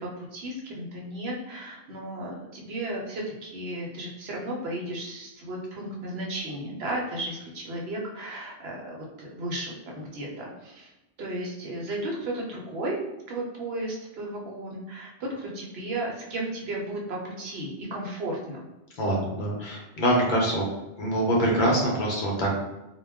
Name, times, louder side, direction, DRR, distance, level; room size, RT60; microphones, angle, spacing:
voice 1, 0.0-10.9 11.2-13.0 13.3-18.7, right 1 dB, 70° right, -2 dB, 0.9 m, -34 dB
voice 2, 19.0-20.6 21.0-22.6, right 1 dB, 55° left, -3 dB, 0.7 m, -24 dB
2.2 x 2.2 x 3.4 m, 0.98 s
omnidirectional pair, 1.1 m